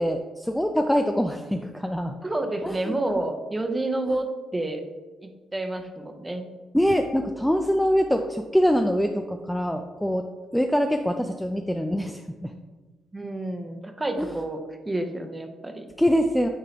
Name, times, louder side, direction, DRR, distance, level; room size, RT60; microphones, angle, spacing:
voice 1, 0.0-2.2 2.6-2.9 6.7-10.3 10.5-12.5 14.2-14.3 16.0-16.5, equal, 5° left, 5 dB, 0.4 m, -24 dB
voice 2, 2.2-4.8 5.2-6.5 13.1-14.6 14.8-15.9, right 2 dB, 20° right, 5 dB, 0.8 m, -29 dB
8.9 x 3.7 x 2.9 m, 1.2 s
cardioid pair, 80°, 0 cm